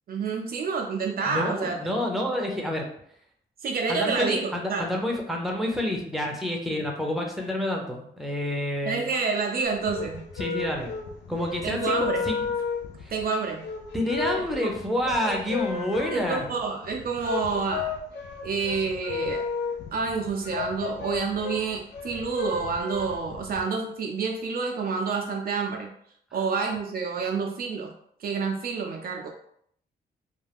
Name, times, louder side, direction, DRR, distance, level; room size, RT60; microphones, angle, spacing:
voice 1, 0.1-1.8 3.6-4.9 8.9-10.2 11.6-12.2 13.1-13.7 14.6-14.7 15.2-15.3 16.1-17.9 18.4-19.4 19.9-25.9 26.3-27.9 28.2-29.3, right 5 dB, 55° right, 1 dB, 0.5 m, -28 dB
voice 2, 1.3-2.8 3.9-9.1 10.4-10.9 11.3-12.0 12.2-12.4 13.0-13.1 13.9-16.5, left 1 dB, ahead, 1 dB, 0.7 m, -28 dB
sound 1, 9.6-23.6, left 5 dB, 70° left, 0.4 m, -33 dB
2.3 x 2.1 x 3.4 m, 0.68 s
supercardioid pair, 60°, 18 cm